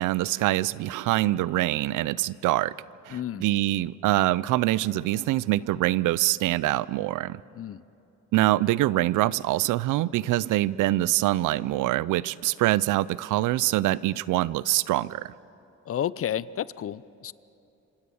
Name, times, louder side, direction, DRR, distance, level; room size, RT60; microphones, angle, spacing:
voice 1, 0.0-2.7 3.1-7.4 8.3-15.3, right 16 dB, 85° right, 20 dB, 0.6 m, -24 dB
voice 2, 3.1-3.4 7.5-7.8 15.9-17.3, left 10 dB, 50° left, 19 dB, 0.6 m, -31 dB
26.5 x 26.0 x 7.1 m, 2.8 s
cardioid pair, 90°, 30 cm